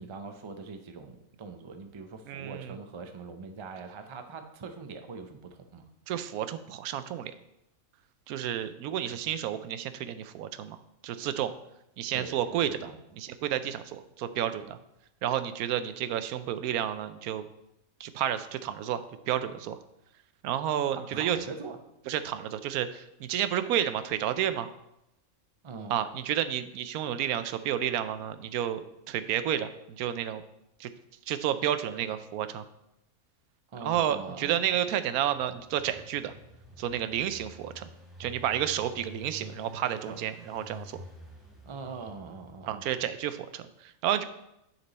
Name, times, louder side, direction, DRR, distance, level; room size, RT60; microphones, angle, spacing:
voice 1, 0.0-5.9 8.9-9.0 9.2-9.3 12.1-13.0 21.1-21.8 25.6-26.0 33.7-34.7 38.2-38.3 40.1-40.2 41.6-42.8, right 4 dB, 40° right, 7 dB, 0.4 m, -43 dB
voice 2, 2.3-2.8 6.1-7.3 8.3-10.8 11.0-11.5 12.0-12.9 13.2-14.8 15.2-17.5 18.0-19.8 20.4-21.4 22.1-24.7 25.9-30.4 30.8-30.9 31.3-32.6 33.8-36.3 36.8-37.9 38.2-41.0 42.7-44.2, right 10 dB, 85° right, 12 dB, 1.1 m, -31 dB
Engine, 35.2-43.1, equal, ahead, 1.5 m, -49 dB
9.7 x 4.5 x 4.1 m, 0.84 s
omnidirectional pair, 1.5 m